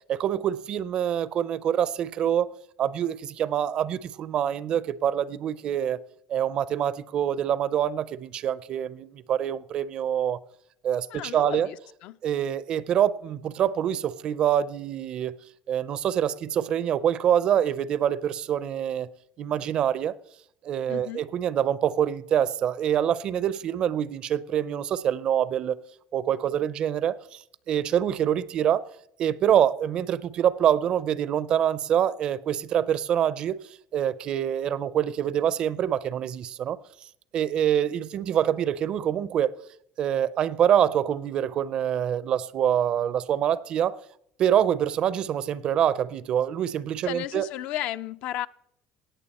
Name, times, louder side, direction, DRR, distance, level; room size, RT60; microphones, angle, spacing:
voice 1, 0.1-2.5 2.8-6.0 6.3-10.4 10.8-11.7 12.2-15.3 15.7-19.1 19.4-20.1 20.6-25.8 26.1-27.4 27.7-28.9 29.2-33.6 33.9-36.8 37.3-39.6 40.0-44.0 44.4-47.5, right 9 dB, 40° right, 0.5 m, -25 dB
voice 2, 11.1-11.8 12.0-12.2 20.9-21.2 47.1-48.5, left 13 dB, 60° left, 0.4 m, -33 dB
18.0 x 6.9 x 4.2 m
cardioid pair, 155°, 2 cm